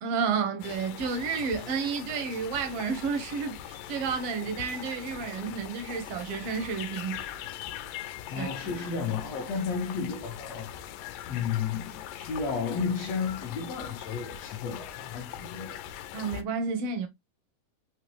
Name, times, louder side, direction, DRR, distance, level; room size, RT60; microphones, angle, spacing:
voice 1, 0.0-7.5 8.4-8.5 16.1-17.1, right 5 dB, 80° right, 1.3 m, -31 dB
sound 1, 0.6-16.4, left 11 dB, 90° left, 2.3 m, -41 dB
voice 2, 8.3-10.7 11.3-15.8, left 5 dB, 70° left, 1.6 m, -33 dB
5.6 x 3.1 x 3.0 m
omnidirectional pair, 3.7 m